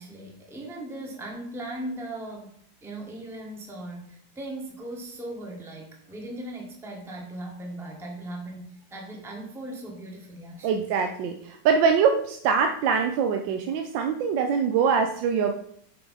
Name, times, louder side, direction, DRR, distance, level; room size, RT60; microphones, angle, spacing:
voice 1, 0.0-10.9, right 1 dB, ahead, 1 dB, 0.8 m, -38 dB
voice 2, 10.6-15.6, right 6 dB, 80° right, 5 dB, 1.3 m, -23 dB
6.6 x 4.7 x 4.0 m, 0.65 s
omnidirectional pair, 2.0 m